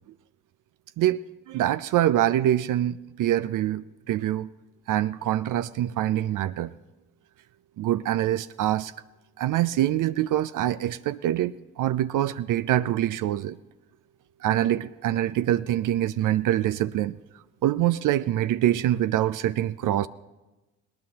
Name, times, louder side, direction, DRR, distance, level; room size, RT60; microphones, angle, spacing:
voice 1, 1.0-4.5 4.9-6.7 7.8-8.9 9.4-13.6 14.4-17.2 17.6-20.1, right 12 dB, 60° right, 0.5 m, -25 dB
19.5 x 18.5 x 2.9 m
hypercardioid pair, 45°, 36 cm